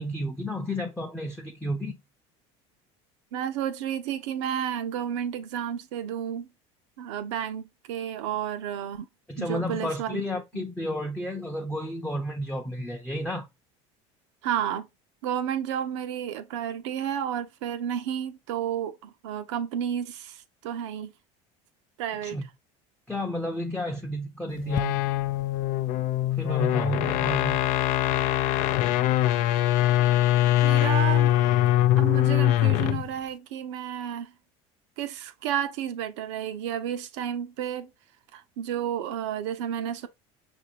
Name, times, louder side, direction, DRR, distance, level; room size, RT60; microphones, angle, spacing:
voice 1, 0.0-2.0 9.3-13.5 22.2-22.5 23.1-25.0 26.4-27.7, equal, 5° left, 0.7 m, -32 dB
voice 2, 3.3-6.5 7.0-9.1 9.4-10.2 10.5-10.6 14.4-14.9 15.2-21.1 22.0-22.4 30.6-31.3 32.0-34.3 35.0-37.9 38.3-40.1, right 9 dB, 90° right, 0.7 m, -31 dB
sound 1, 24.6-33.1, left 13 dB, 60° left, 0.4 m, -23 dB
5.8 x 2.6 x 2.8 m
supercardioid pair, 110°, 15 cm